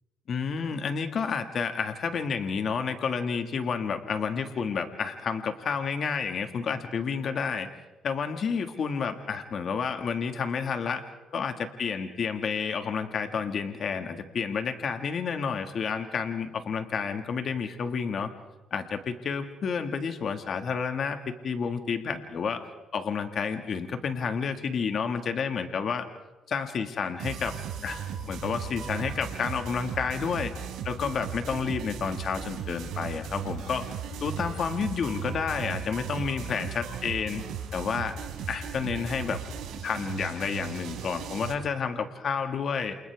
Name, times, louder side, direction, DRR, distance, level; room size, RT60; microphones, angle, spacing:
voice 1, 0.3-7.7 8.0-11.0 11.3-18.3 18.7-22.7 22.9-26.1 26.5-27.5 27.8-30.5 30.8-34.0 34.2-37.5 37.7-38.2 38.5-39.4 39.8-43.0, left 6 dB, 55° left, 6 dB, 1.9 m, -30 dB
sound 1, 27.2-41.5, right 7 dB, 90° right, 4.1 m, -37 dB
29.0 x 28.5 x 3.6 m, 1.1 s
cardioid pair, 90°, 0 cm